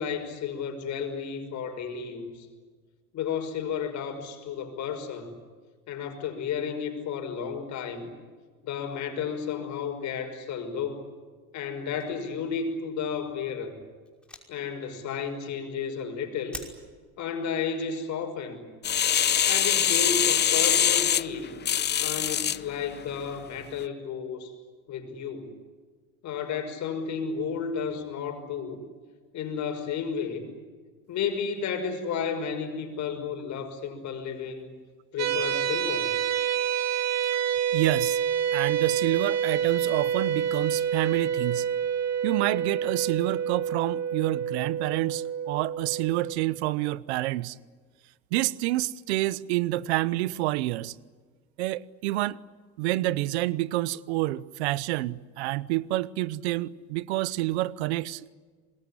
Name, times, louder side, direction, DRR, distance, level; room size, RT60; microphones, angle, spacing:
voice 1, 0.0-2.5 3.1-5.3 5.9-8.1 8.6-11.1 11.5-13.7 14.5-16.6 17.2-18.6 19.5-21.5 22.0-24.5 24.9-25.5 26.2-28.8 29.3-30.5 31.1-34.7 35.1-36.1, left 6 dB, 60° left, 5.7 m, -32 dB
sound 1, 11.7-12.5 13.0-13.1 13.4-13.6 14.0-14.8 15.4-15.6 15.9-16.2 16.4-16.7, left 1 dB, 5° left, 5.6 m, -44 dB
sound 2, 18.8-22.6 23.2-23.3, left 9 dB, 30° left, 0.7 m, -23 dB
sound 3, 35.2-46.4, right 8 dB, 50° right, 3.2 m, -28 dB
voice 2, 37.7-38.2 38.5-41.6 42.2-47.6 48.3-50.9 51.6-52.4 52.8-58.2, right 17 dB, 90° right, 0.8 m, -28 dB
25.5 x 21.0 x 9.9 m
supercardioid pair, 90°, 32 cm